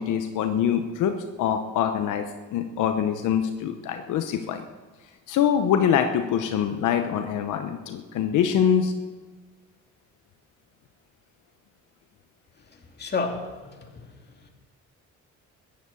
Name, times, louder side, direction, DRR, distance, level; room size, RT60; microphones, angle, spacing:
voice 1, 0.0-2.2 2.5-4.6 5.3-8.9, left 8 dB, 85° left, 6 dB, 1.0 m, -24 dB
voice 2, 12.7-14.1 14.4-14.5, left 4 dB, 35° left, 2 dB, 2.7 m, -32 dB
15.0 x 10.0 x 7.0 m, 1.3 s
cardioid pair, 90°, 30 cm